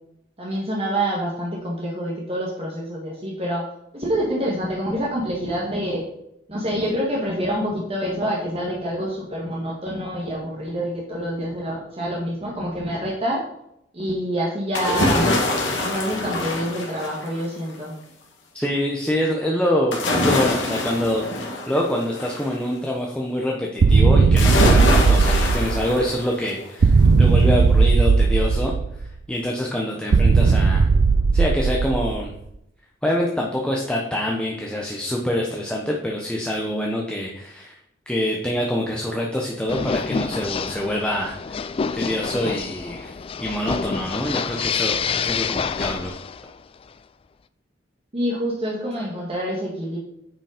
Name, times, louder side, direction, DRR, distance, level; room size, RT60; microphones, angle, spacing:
voice 1, 0.4-3.6 3.9-6.0 6.5-13.4 13.9-15.3 15.7-17.9 48.1-50.0, equal, 30° right, -3 dB, 1.6 m, -26 dB
sound 1, 14.7-17.6 19.9-22.5 24.4-26.6 27.1-27.2, left 2 dB, 80° left, 2.0 m, -24 dB
voice 2, 18.5-28.7 29.3-30.9 31.3-32.3 33.0-37.8 38.1-41.6 41.9-46.2, left 1 dB, 5° left, -1 dB, 0.9 m, -25 dB
sound 2, 23.8-26.1 26.8-29.1 30.1-32.4, right 4 dB, 85° right, 0.5 m, -17 dB
sound 3, 39.7-46.6, left 6 dB, 30° left, 0.3 m, -27 dB
9.0 x 5.3 x 5.0 m, 0.78 s
head